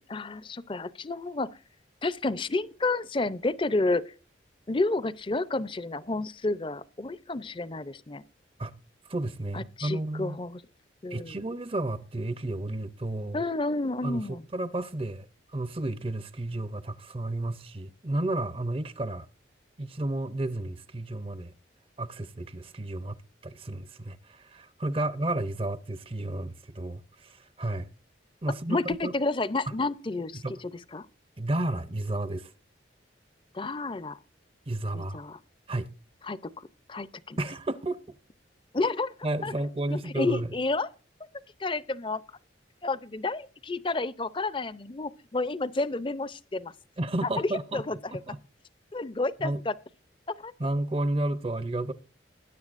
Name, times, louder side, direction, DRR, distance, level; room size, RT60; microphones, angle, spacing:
voice 1, 0.1-1.6 2.0-4.1 4.7-8.2 9.5-10.6 11.0-11.4 13.3-14.4 28.7-31.1 33.5-34.2 34.9-35.4 36.2-37.4 38.7-39.1 39.4-39.5 39.9-40.9 41.6-42.2 42.8-46.7 47.2-48.0 48.9-49.7 50.3-50.5, left 2 dB, 25° left, 0.5 m, -30 dB
voice 2, 9.1-10.4 11.1-13.4 14.0-15.3 15.5-19.3 19.8-21.5 22.0-27.9 28.4-29.1 30.3-30.5 31.4-32.5 34.7-35.2 35.7-35.9 37.4-38.0 39.2-40.5 47.0-47.8 48.1-48.4 49.4-49.6 50.6-51.9, right 1 dB, 30° right, 0.6 m, -32 dB
20.5 x 10.0 x 2.5 m
head